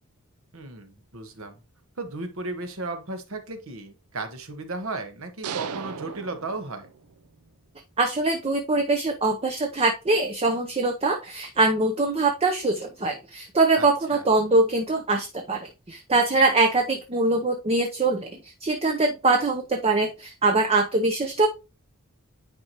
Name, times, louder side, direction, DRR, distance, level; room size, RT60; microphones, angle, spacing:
voice 1, 0.5-1.6 2.0-6.9 13.8-14.2, right 3 dB, 65° right, 7 dB, 1.3 m, -35 dB
sound 1, 5.4-7.3, right 7 dB, 80° right, 0.6 m, -36 dB
voice 2, 8.0-21.5, right 3 dB, 25° right, 4 dB, 0.7 m, -23 dB
9.5 x 4.7 x 2.9 m, 0.28 s
head